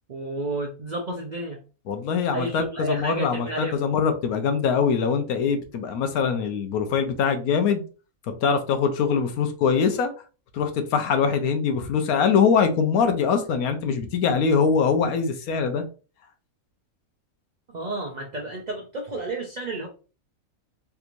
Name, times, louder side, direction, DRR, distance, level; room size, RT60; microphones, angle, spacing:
voice 1, 0.1-1.6 2.3-3.8 17.7-19.9, right 2 dB, 70° right, 0 dB, 0.4 m, -31 dB
voice 2, 1.9-7.8 8.4-10.1 10.5-15.8, left 6 dB, 80° left, 7 dB, 1.1 m, -23 dB
3.4 x 2.9 x 2.5 m, 0.35 s
omnidirectional pair, 1.5 m